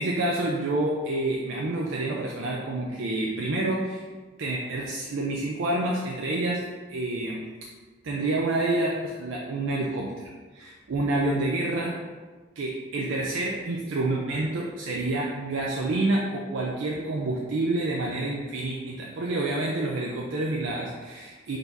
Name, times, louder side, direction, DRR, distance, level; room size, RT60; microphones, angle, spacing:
voice 1, 0.0-4.1 4.4-7.4 8.0-12.0 12.6-21.6, right 2 dB, 75° right, -2 dB, 0.5 m, -28 dB
3.8 x 2.7 x 4.5 m, 1.4 s
head